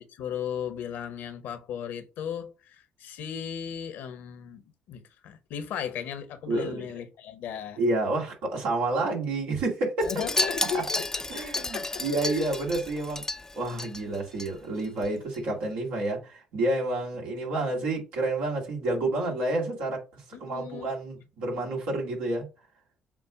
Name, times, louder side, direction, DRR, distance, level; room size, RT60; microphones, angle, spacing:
voice 1, 0.0-4.6 4.9-7.8 10.0-12.3 20.3-20.9, left 8 dB, 70° left, 1.1 m, -36 dB
voice 2, 6.5-6.8 7.8-10.1 10.7-10.8 11.3-13.2 13.6-22.5, right 2 dB, 75° right, 2.2 m, -29 dB
Wind chime, 10.0-14.5 14.8-15.1 15.3-15.4, left 2 dB, 15° left, 0.6 m, -32 dB
7.5 x 2.5 x 4.9 m
hypercardioid pair, 50°, 3 cm